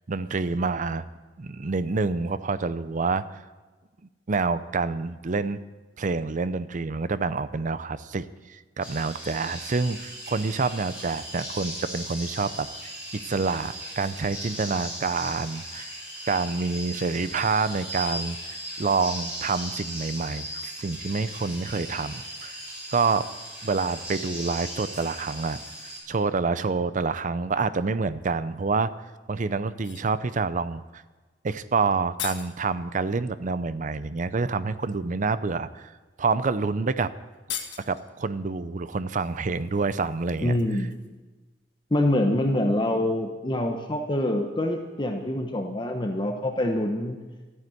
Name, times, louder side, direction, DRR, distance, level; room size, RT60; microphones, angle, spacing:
voice 1, 0.1-1.1 1.4-3.4 4.3-5.6 6.0-12.7 13.2-15.9 16.3-22.6 22.9-23.3 23.6-25.6 26.1-28.9 29.3-31.0 31.4-35.9 36.2-37.1 37.9-40.5, right 4 dB, 45° right, 14 dB, 0.5 m, -27 dB
sound 1, 8.8-26.0, equal, 5° right, 6.3 m, -38 dB
sound 2, 29.7-30.1 31.6-31.7 31.9-32.6 34.0-34.1 34.7-35.0 35.8-35.9 36.3-36.4 36.7-36.8 37.3-38.1 39.2-41.2 41.5-41.6, left 9 dB, 85° left, 1.5 m, -40 dB
voice 2, 40.4-40.9 41.9-47.2, left 1 dB, 25° left, 3 dB, 1.0 m, -25 dB
13.5 x 9.6 x 7.8 m, 1.3 s
head